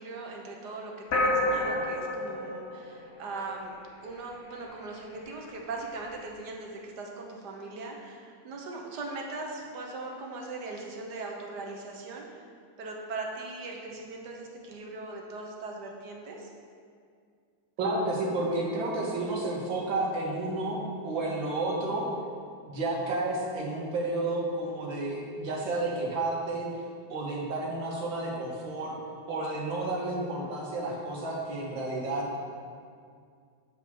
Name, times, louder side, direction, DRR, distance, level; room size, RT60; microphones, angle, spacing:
voice 1, 0.0-3.8 4.0-12.4 12.8-16.5, right 3 dB, 60° right, 0 dB, 1.5 m, -40 dB
sound 1, 1.1-3.7, left 1 dB, 50° left, 0.9 m, -29 dB
voice 2, 17.8-22.1 22.6-26.7 27.1-29.0 29.3-32.4, right 2 dB, 80° right, -2 dB, 2.0 m, -31 dB
7.6 x 4.8 x 6.1 m, 2.2 s
omnidirectional pair, 2.1 m